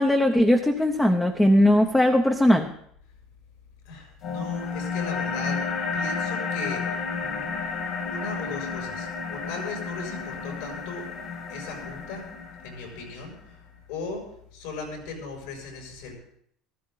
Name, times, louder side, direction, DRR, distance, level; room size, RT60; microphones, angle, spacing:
voice 1, 0.0-2.7, left 1 dB, 5° left, 5 dB, 0.6 m, -19 dB
voice 2, 3.8-5.7 5.9-7.5 8.0-11.1 11.5-12.3 12.6-13.6 13.9-16.1, left 4 dB, 75° left, 1 dB, 6.3 m, -37 dB
sound 1, 4.2-13.2, left 5 dB, 35° left, 1.8 m, -31 dB
15.5 x 14.5 x 3.9 m, 0.67 s
cardioid pair, 175°, 0 cm